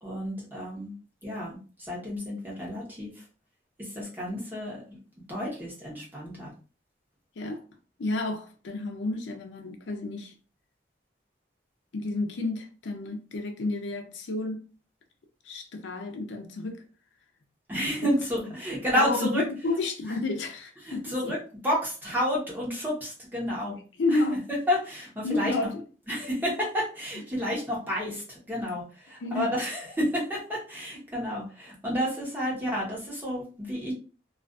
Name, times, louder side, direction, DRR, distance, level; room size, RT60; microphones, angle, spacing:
voice 1, 0.0-0.9 1.2-3.1 3.8-4.8 5.3-6.5 17.7-19.4 20.8-21.4 21.6-23.8 24.1-24.2 24.5-25.5 26.1-33.9, equal, 10° right, 0.9 m, -30 dB
voice 2, 8.0-10.3 11.9-14.6 15.4-16.8 18.0-18.1 18.9-21.4 24.0-24.4 25.2-25.8 29.2-29.5, left 2 dB, 90° left, 0.5 m, -31 dB
2.4 x 2.3 x 2.4 m
head